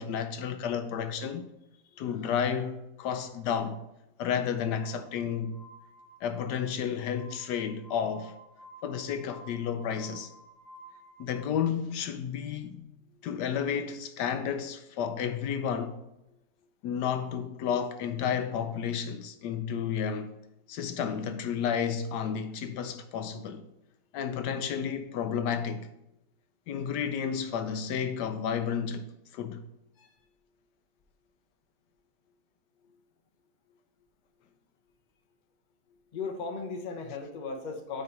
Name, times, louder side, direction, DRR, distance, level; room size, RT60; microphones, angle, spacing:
voice 1, 0.0-1.5 2.0-3.8 4.2-5.5 6.2-8.3 8.8-10.3 11.2-12.9 13.2-16.0 16.8-20.4 20.7-23.6 24.1-25.9 26.7-29.1 29.3-29.6, left 7 dB, 75° left, 1.1 m, -31 dB
Glass, 4.7-11.4, right 1 dB, 65° right, 3.6 m, -53 dB
voice 2, 36.1-38.0, left 4 dB, 40° left, 0.7 m, -37 dB
5.9 x 4.9 x 5.3 m
omnidirectional pair, 1.9 m